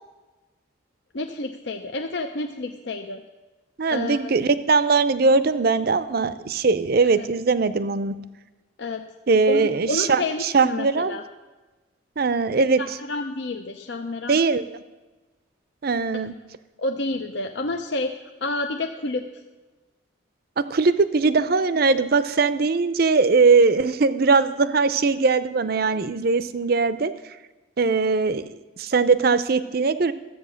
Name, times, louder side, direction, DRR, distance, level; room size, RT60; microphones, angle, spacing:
voice 1, 1.1-3.2 3.9-4.3 7.2-7.3 8.8-9.0 9.5-11.2 12.8-14.4 16.8-19.3, left 2 dB, 60° left, 4 dB, 0.6 m, -29 dB
voice 2, 3.8-8.1 9.3-11.2 12.2-12.8 14.3-14.6 15.8-16.3 20.6-27.1 27.8-30.1, right 4 dB, 50° right, 14 dB, 0.5 m, -20 dB
13.5 x 8.2 x 6.4 m, 1.2 s
head